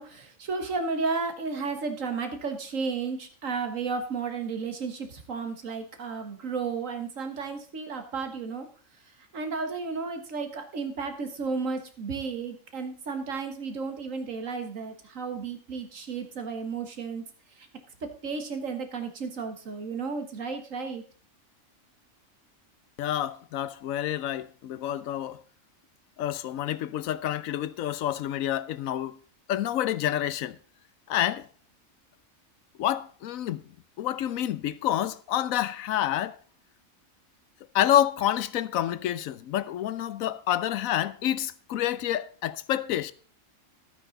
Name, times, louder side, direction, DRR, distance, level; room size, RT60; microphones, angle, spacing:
voice 1, 0.0-8.7 9.3-17.2 17.6-17.7 18.2-21.0, right 4 dB, 75° right, 1.8 m, -33 dB
voice 2, 23.0-25.4 26.2-29.2 29.5-30.6 31.1-31.5 32.8-33.6 34.0-36.4 37.7-43.1, left 11 dB, 85° left, 1.1 m, -28 dB
12.5 x 8.8 x 3.9 m
omnidirectional pair, 1.4 m